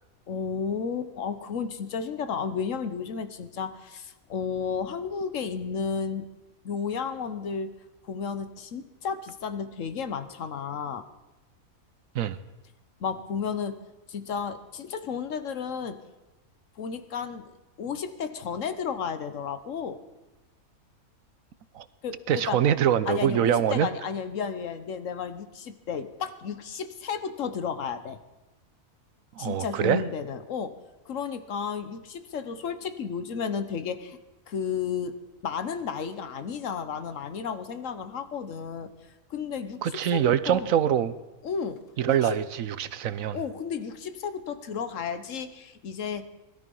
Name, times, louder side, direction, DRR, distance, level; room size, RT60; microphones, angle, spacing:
voice 1, 0.3-6.3 6.6-7.7 8.0-11.0 13.0-13.8 14.1-16.0 16.8-17.5 17.8-20.0 22.0-22.6 23.0-28.2 29.4-30.8 31.1-34.2 34.5-35.2 35.4-38.9 39.3-40.7 41.4-41.8 42.1-42.4 42.8-42.9 43.3-46.2, left 6 dB, 60° left, 11 dB, 1.3 m, -33 dB
voice 2, 22.3-23.9 29.4-30.0 39.8-41.1 42.0-43.4, right 10 dB, 70° right, 15 dB, 1.1 m, -24 dB
20.5 x 13.0 x 5.4 m, 1.1 s
omnidirectional pair, 1.5 m